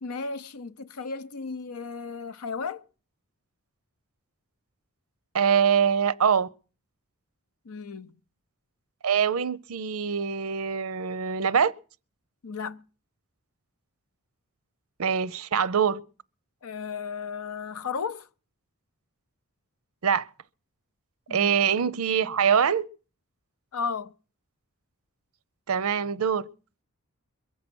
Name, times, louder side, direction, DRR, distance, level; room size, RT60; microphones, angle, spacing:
voice 1, 0.0-2.8 7.7-8.1 12.4-12.8 16.6-18.3 21.3-21.5 23.7-24.1, left 5 dB, 80° left, 0.7 m, -34 dB
voice 2, 5.3-6.5 9.0-11.7 15.0-16.0 20.0-20.3 21.3-22.8 25.7-26.5, right 7 dB, 70° right, 0.6 m, -24 dB
22.5 x 7.6 x 6.1 m
head